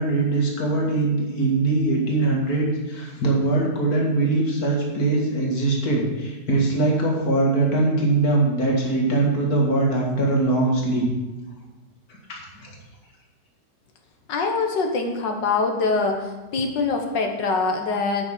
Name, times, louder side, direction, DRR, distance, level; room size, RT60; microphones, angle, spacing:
voice 1, 0.0-11.1 12.3-12.7, right 2 dB, 55° left, -2 dB, 2.7 m, -22 dB
voice 2, 14.3-18.2, left 4 dB, 90° left, 4 dB, 2.1 m, -24 dB
9.5 x 6.5 x 7.6 m, 1.1 s
omnidirectional pair, 1.9 m